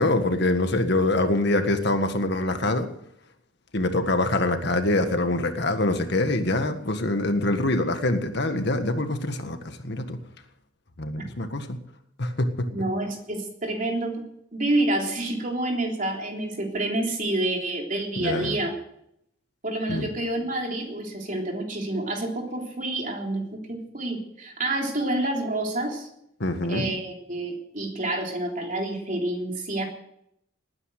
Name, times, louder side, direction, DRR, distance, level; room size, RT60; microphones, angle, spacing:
voice 1, 0.0-2.9 3.7-10.2 11.0-11.8 12.2-12.7 18.2-18.6 19.9-20.1 26.4-27.0, left 2 dB, 60° left, 7 dB, 1.7 m, -24 dB
voice 2, 12.7-14.2 14.5-18.7 19.6-26.1 26.7-29.8, right 2 dB, 40° right, 2 dB, 3.4 m, -28 dB
19.5 x 9.7 x 6.7 m, 0.76 s
head